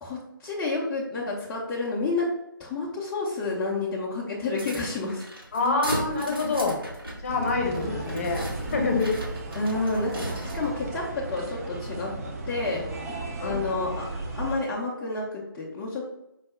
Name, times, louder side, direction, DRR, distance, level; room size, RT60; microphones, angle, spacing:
voice 1, 0.0-2.3 2.6-5.2 7.8-8.2 9.5-10.1 10.5-12.1 12.5-12.8 13.4-14.0 14.4-16.1, left 3 dB, 10° left, -8 dB, 0.4 m, -30 dB
sound 1, 4.5-10.8, right 1 dB, 85° right, 1.1 m, -37 dB
voice 2, 5.5-6.8 7.2-9.1 13.4-13.8, left 3 dB, 40° left, 2 dB, 0.8 m, -26 dB
sound 2, 7.3-14.6, right 2 dB, 40° right, 0.6 m, -35 dB
4.6 x 2.0 x 3.6 m, 0.87 s
figure-of-eight pair, 145°, 12 cm